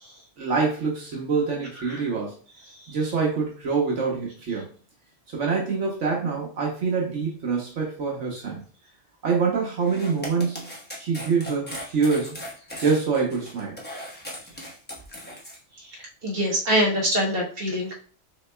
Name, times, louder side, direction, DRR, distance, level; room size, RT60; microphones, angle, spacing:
voice 1, 0.4-2.4 2.9-4.7 5.3-8.6 9.2-10.7 11.0-12.4 12.8-13.8, right 5 dB, 75° right, -2 dB, 1.3 m, -25 dB
sound 1, 9.8-15.6, equal, 10° left, 0.9 m, -38 dB
voice 2, 16.2-17.9, equal, 55° right, -3 dB, 1.4 m, -25 dB
6.1 x 3.0 x 2.2 m, 0.41 s
omnidirectional pair, 1.2 m